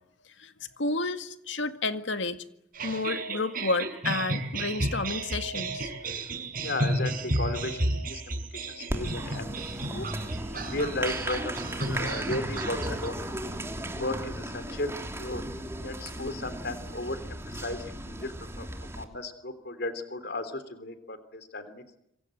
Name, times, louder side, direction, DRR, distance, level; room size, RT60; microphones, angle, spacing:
voice 1, 0.8-2.4 2.8-5.9, left 3 dB, 70° left, 2.0 m, -30 dB
sound 1, 2.7-13.1, right 2 dB, 45° right, 5.6 m, -32 dB
voice 2, 6.6-9.5 9.9-10.1 10.5-13.2 13.8-15.4 15.8-18.7 18.9-21.8, left 2 dB, 55° left, 3.3 m, -35 dB
Applause, 8.9-19.0, right 1 dB, 15° right, 3.0 m, -36 dB
27.5 x 25.0 x 7.9 m
head